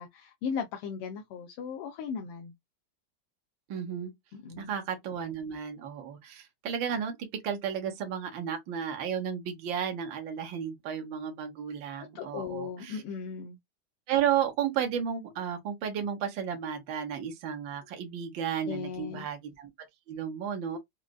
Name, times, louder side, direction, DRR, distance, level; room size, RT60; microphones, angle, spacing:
voice 1, 0.0-2.5 4.3-4.7 12.1-13.6 18.7-19.3, left 6 dB, 90° left, 1.7 m, -37 dB
voice 2, 3.7-4.1 4.6-13.0 14.1-19.7 20.1-20.8, right 8 dB, 65° right, 1.7 m, -33 dB
5.0 x 2.4 x 2.2 m
omnidirectional pair, 2.4 m